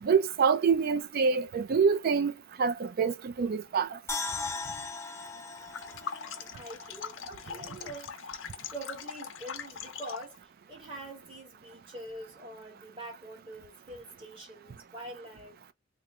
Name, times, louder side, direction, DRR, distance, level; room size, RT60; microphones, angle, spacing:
voice 1, 0.0-2.3 2.6-4.0, right 5 dB, 50° right, 0.4 m, -26 dB
sound 1, 4.1-7.3 7.6-7.7, left 4 dB, 15° left, 0.5 m, -38 dB
sound 2, 5.6-10.4, left 7 dB, 70° left, 0.5 m, -41 dB
voice 2, 5.9-8.1 8.7-10.4 10.7-15.6, right 1 dB, 25° right, 1.5 m, -45 dB
3.1 x 2.0 x 3.5 m
head